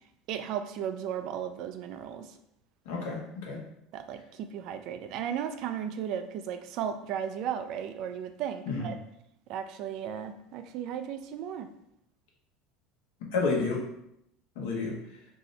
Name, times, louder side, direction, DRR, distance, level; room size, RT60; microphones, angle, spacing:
voice 1, 0.3-2.3 3.9-9.0 9.5-11.7, right 9 dB, 60° right, 9 dB, 0.3 m, -35 dB
voice 2, 2.8-3.6 8.7-8.9 13.2-13.8 14.5-15.2, left 4 dB, 80° left, -1 dB, 0.9 m, -31 dB
2.7 x 2.0 x 3.9 m, 0.76 s
supercardioid pair, 110°, 0 cm